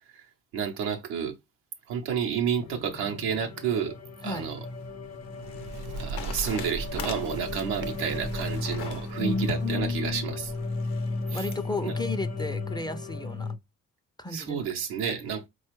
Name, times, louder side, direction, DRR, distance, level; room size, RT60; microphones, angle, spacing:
voice 1, 0.5-1.3 1.9-3.9 4.2-4.6 6.0-10.5 11.3-11.5 11.8-11.9 14.3-15.5, right 7 dB, 90° right, 0.7 m, -30 dB
sound 1, 2.6-13.6, left 3 dB, 45° left, 0.7 m, -34 dB
sound 2, 4.6-11.6, left 7 dB, 85° left, 0.7 m, -44 dB
Bird, 5.1-10.9, right 3 dB, 55° right, 0.6 m, -40 dB
voice 2, 9.2-10.3 11.3-13.5 14.2-14.6, left 3 dB, 10° left, 0.4 m, -33 dB
4.1 x 2.3 x 3.0 m
supercardioid pair, 55°, 37 cm